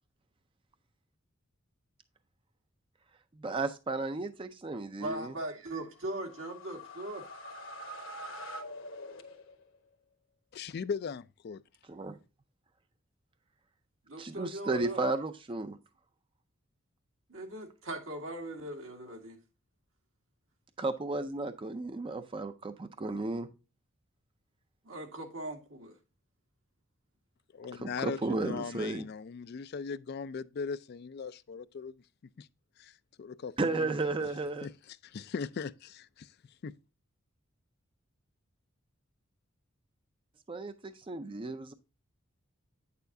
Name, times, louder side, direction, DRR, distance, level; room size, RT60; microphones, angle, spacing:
voice 1, 3.4-5.3 11.9-12.2 14.2-15.8 20.8-23.5 27.7-29.0 33.6-34.7 40.5-41.7, right 3 dB, 25° right, 0.4 m, -34 dB
voice 2, 5.0-7.3 14.1-15.0 17.3-19.4 24.8-26.0, right 1 dB, 75° right, 1.8 m, -40 dB
sound 1, 6.0-9.8, equal, 70° left, 1.2 m, -45 dB
voice 3, 10.5-11.6 27.5-31.9 32.4-32.5 32.8-32.9 33.2-33.9 34.2-34.3 34.6-36.3 36.6-36.8, left 5 dB, 50° left, 0.4 m, -39 dB
9.0 x 6.7 x 2.6 m
head